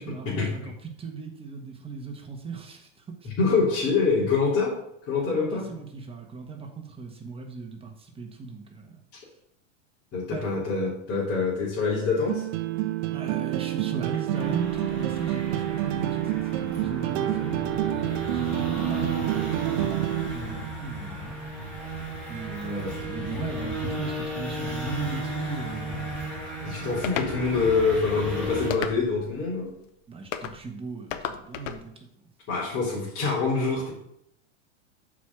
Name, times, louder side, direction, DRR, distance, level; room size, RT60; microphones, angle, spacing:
voice 1, 0.0-3.3 5.3-9.0 10.3-10.5 13.0-21.4 22.3-26.1 30.1-32.3, right 5 dB, 15° right, 3 dB, 1.3 m, -37 dB
voice 2, 3.4-4.7 5.0-5.7 10.1-12.4 22.6-22.9 26.6-29.7 32.5-33.9, left 4 dB, 40° left, -8 dB, 3.2 m, -25 dB
sound 1, 12.3-20.3, right 14 dB, 55° right, 0.8 m, -28 dB
sound 2, 14.3-28.7, right 1 dB, 5° left, 3.3 m, -34 dB
sound 3, 27.0-27.3 28.7-29.3 30.3-30.6 31.1-31.8, left 9 dB, 80° left, 0.9 m, -32 dB
6.9 x 5.0 x 6.0 m, 0.76 s
supercardioid pair, 125°, 37 cm